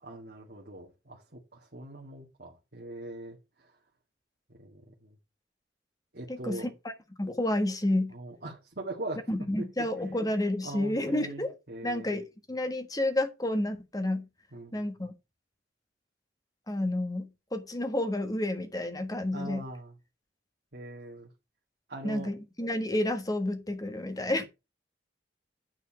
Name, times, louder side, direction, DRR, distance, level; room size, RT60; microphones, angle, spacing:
voice 1, 0.0-3.7 4.6-5.2 6.1-6.7 8.1-9.2 9.6-9.9 10.6-12.1 14.5-14.9 19.3-19.9 20.7-21.3 21.9-22.3, right 2 dB, 60° right, 2.0 m, -42 dB
voice 2, 6.3-6.9 7.2-8.1 9.3-11.5 11.8-14.3 14.7-15.1 16.7-19.6 22.0-24.4, left 1 dB, 20° left, 1.5 m, -30 dB
9.8 x 4.7 x 6.9 m
head